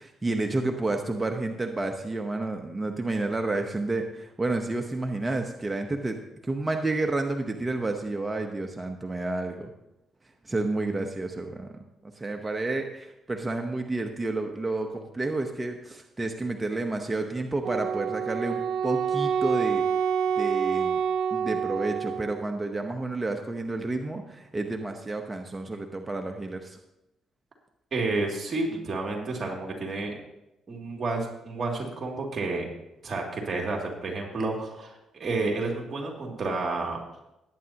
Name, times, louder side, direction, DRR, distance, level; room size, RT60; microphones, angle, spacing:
voice 1, 0.0-6.2 6.4-9.7 10.4-19.8 20.4-21.0 21.3-26.8, right 2 dB, 20° right, 4 dB, 1.0 m, -30 dB
Wind instrument woodwind instrument, 17.6-22.4, right 7 dB, 75° right, 0.5 m, -27 dB
voice 2, 27.9-30.1 30.7-32.6 33.0-37.0, right 3 dB, 40° right, -1 dB, 2.6 m, -30 dB
19.0 x 9.1 x 2.9 m, 0.91 s
cardioid pair, 90°, 0 cm